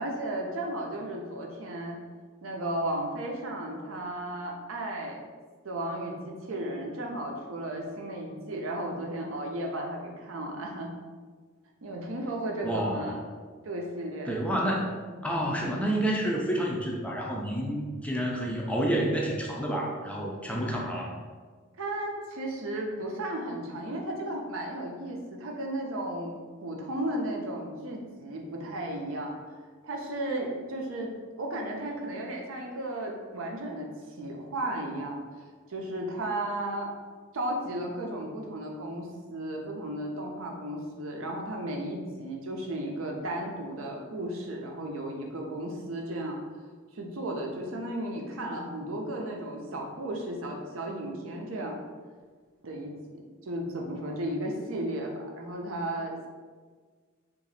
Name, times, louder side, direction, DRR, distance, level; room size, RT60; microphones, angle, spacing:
voice 1, 0.0-2.0 2.4-5.2 5.6-10.9 11.8-13.2 13.6-14.3 21.8-26.4 26.6-29.4 29.8-33.9 34.2-35.2 35.7-36.9 37.3-46.4 46.9-51.8 52.6-52.9 53.4-56.3, right 1 dB, 75° right, 1 dB, 0.6 m, -34 dB
voice 2, 12.6-13.2 14.3-15.0 15.2-21.1, right 1 dB, 5° left, -2 dB, 0.4 m, -29 dB
2.9 x 2.6 x 4.1 m, 1.5 s
head